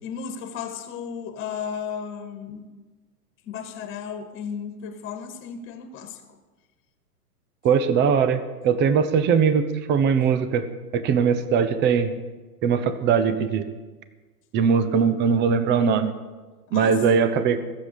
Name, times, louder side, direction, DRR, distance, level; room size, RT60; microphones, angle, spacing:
voice 1, 0.0-2.7 3.5-6.2 16.7-17.0, left 7 dB, 25° left, 7 dB, 1.9 m, -34 dB
voice 2, 7.6-10.7 10.9-12.1 12.6-13.7 14.5-16.1 16.7-17.6, right 6 dB, 20° right, 11 dB, 1.0 m, -20 dB
16.0 x 7.7 x 8.5 m, 1.3 s
hypercardioid pair, 115°, 48 cm